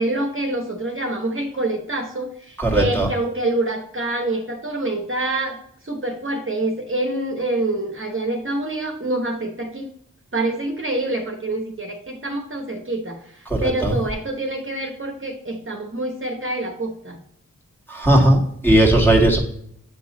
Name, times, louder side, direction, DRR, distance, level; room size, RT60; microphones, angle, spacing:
voice 1, 0.0-9.9 10.3-17.2, right 2 dB, 40° right, 1 dB, 1.1 m, -26 dB
voice 2, 2.6-3.1 13.6-13.9 17.9-19.4, right 1 dB, 5° left, -1 dB, 1.8 m, -16 dB
8.4 x 3.1 x 4.0 m, 0.68 s
cardioid pair, 45°, 31 cm